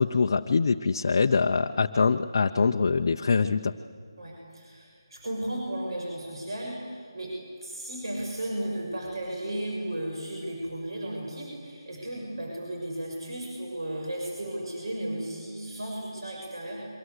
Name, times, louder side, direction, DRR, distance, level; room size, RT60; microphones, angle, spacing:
voice 1, 0.0-3.7, left 4 dB, 45° left, 4 dB, 0.7 m, -24 dB
voice 2, 4.2-16.9, right 1 dB, 70° right, -1 dB, 6.5 m, -35 dB
26.0 x 24.0 x 8.1 m, 2.1 s
figure-of-eight pair, 170°, 3 cm